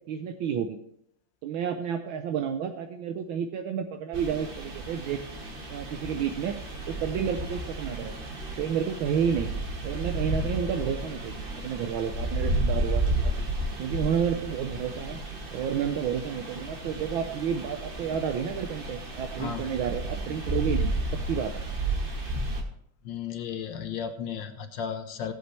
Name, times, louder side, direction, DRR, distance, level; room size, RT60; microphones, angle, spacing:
voice 1, 0.1-0.8 1.4-5.2 5.7-6.6 6.9-8.1 8.6-9.5 9.8-13.3 13.8-15.2 15.5-20.9 21.3-21.5, right 8 dB, 75° right, 6 dB, 1.4 m, -30 dB
sound 1, 4.1-22.6, right 1 dB, 30° right, 1.1 m, -32 dB
voice 2, 23.0-25.3, left 7 dB, 65° left, 8 dB, 1.5 m, -34 dB
16.0 x 8.2 x 3.2 m, 0.73 s
omnidirectional pair, 2.3 m